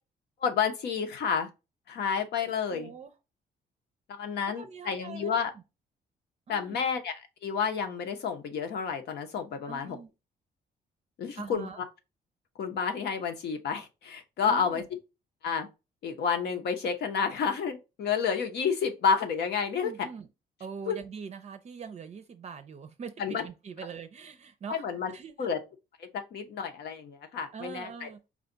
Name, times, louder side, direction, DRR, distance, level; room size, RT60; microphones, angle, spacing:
voice 1, 0.4-1.5 1.9-2.9 4.1-5.5 6.5-7.1 7.4-10.0 11.2-11.7 12.6-14.8 15.4-15.7 16.0-19.9 20.9-21.0 23.2-23.4 24.7-25.1 25.4-25.6 26.0-28.1, left 6 dB, 75° left, 1.0 m, -30 dB
voice 2, 2.7-3.1 4.6-5.6 6.5-6.8 9.6-10.1 11.4-11.8 14.5-14.9 19.8-20.3 20.6-25.5 27.5-28.2, right 6 dB, 40° right, 0.5 m, -43 dB
4.9 x 2.3 x 3.9 m
cardioid pair, 140°, 17 cm